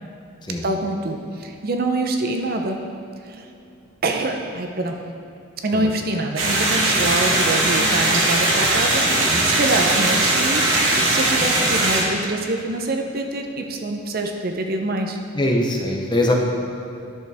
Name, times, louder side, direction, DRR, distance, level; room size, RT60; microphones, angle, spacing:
voice 1, 0.6-2.9 3.2-3.5 4.0-5.1 5.6-15.2, right 2 dB, 45° right, 4 dB, 0.6 m, -25 dB
sound 1, 6.4-12.0, right 2 dB, 70° right, 1.6 m, -19 dB
voice 2, 15.3-16.4, left 1 dB, 20° left, 0 dB, 0.7 m, -22 dB
10.5 x 6.5 x 3.4 m, 2.6 s
head